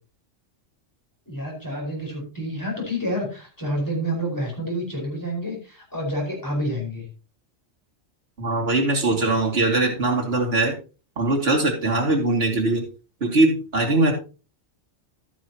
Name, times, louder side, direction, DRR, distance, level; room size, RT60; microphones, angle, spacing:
voice 1, 1.3-7.0, equal, 15° left, -2 dB, 5.0 m, -28 dB
voice 2, 8.4-10.8 11.2-12.8 13.2-14.1, right 2 dB, 50° right, -1 dB, 2.8 m, -21 dB
12.5 x 10.0 x 2.9 m, 0.34 s
omnidirectional pair, 1.3 m